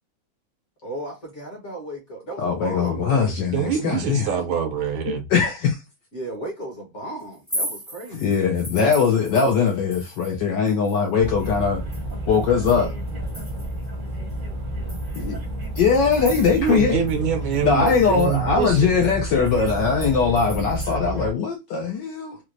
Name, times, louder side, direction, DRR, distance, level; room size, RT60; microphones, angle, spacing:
voice 1, 0.8-3.5 6.1-8.3 17.8-18.4, right 2 dB, 45° left, 1.1 m, -35 dB
voice 2, 2.4-4.3 5.1-5.8 8.1-11.8 12.3-12.9 15.2-15.4 15.8-17.0 17.6-22.4, left 5 dB, 75° left, 1.1 m, -21 dB
voice 3, 3.5-5.3 16.5-19.0, right 8 dB, 75° right, 1.4 m, -25 dB
sound 1, 7.3-10.4 10.7-13.9 14.3-14.4 14.9-16.8 17.1-17.2 17.5-20.9, equal, 10° left, 0.6 m, -37 dB
sound 2, 11.2-21.3, equal, 40° right, 0.8 m, -30 dB
4.4 x 2.0 x 2.5 m
omnidirectional pair, 2.4 m